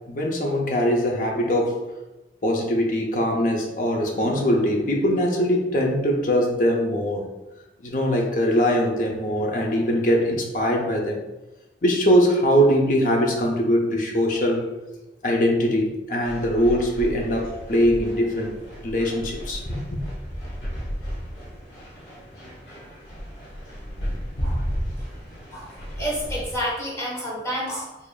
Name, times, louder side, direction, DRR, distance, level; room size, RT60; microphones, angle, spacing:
voice 1, 0.1-1.8 2.4-7.2 7.8-11.2 11.8-14.7 15.2-18.5 18.8-20.0, equal, 45° left, 0 dB, 0.6 m, -22 dB
sound 1, 16.2-26.5, equal, 85° left, 1.4 m, -33 dB
voice 2, 25.5-28.0, equal, 15° left, -5 dB, 1.1 m, -30 dB
4.9 x 2.8 x 2.4 m, 1.0 s
head